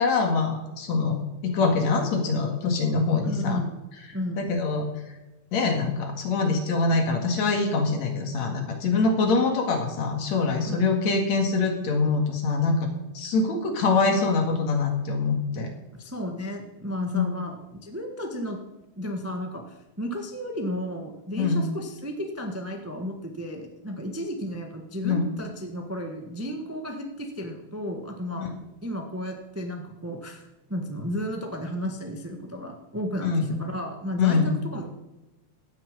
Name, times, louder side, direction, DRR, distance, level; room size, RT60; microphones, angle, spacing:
voice 1, 0.0-3.6 4.4-4.9 5.5-12.8 13.1-15.7 17.1-17.3 21.4-21.7 25.0-25.3 28.4-28.5 33.2-33.5 34.2-34.5, left 4 dB, 65° left, 4 dB, 3.1 m, -24 dB
voice 2, 3.2-3.8 4.1-4.5 10.6-10.8 15.9-18.6 18.9-19.6 20.0-28.5 28.8-34.9, equal, 10° right, 3 dB, 0.6 m, -33 dB
15.5 x 9.7 x 5.3 m, 1.0 s
omnidirectional pair, 3.5 m